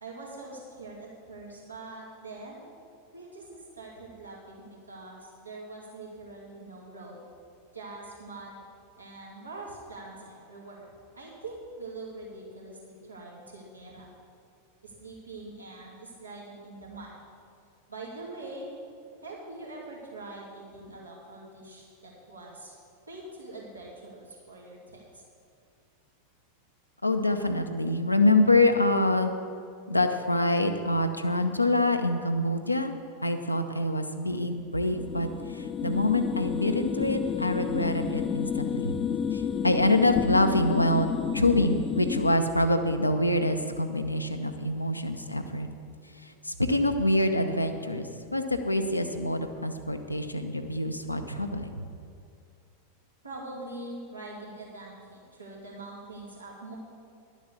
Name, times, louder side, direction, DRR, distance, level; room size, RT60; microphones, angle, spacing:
voice 1, 0.0-2.7 3.1-7.2 7.7-8.6 9.0-10.9 11.1-14.1 14.8-17.2 17.9-18.8 19.2-22.7 23.1-25.2 53.2-56.8, right 2 dB, 80° right, -5 dB, 2.4 m, -43 dB
voice 2, 27.0-29.3 29.9-32.9 33.2-38.9 39.3-45.7 46.2-51.8, left 1 dB, 85° left, 6 dB, 0.7 m, -26 dB
sound 1, 34.8-42.4, left 8 dB, 25° left, 0.3 m, -31 dB
11.5 x 7.4 x 6.9 m, 2.4 s
figure-of-eight pair, 90°, 0 cm